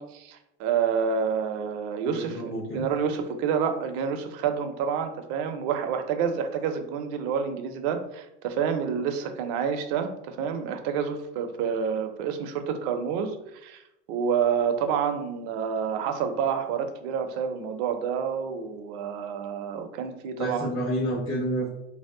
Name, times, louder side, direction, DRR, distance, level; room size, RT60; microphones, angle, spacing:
voice 1, 0.0-2.4 2.7-13.8 14.1-20.7, right 7 dB, 60° right, 7 dB, 0.6 m, -28 dB
voice 2, 2.0-2.8 20.4-21.7, right 1 dB, 40° left, -6 dB, 1.1 m, -29 dB
2.7 x 2.0 x 3.7 m, 0.85 s
hypercardioid pair, 95°, 35 cm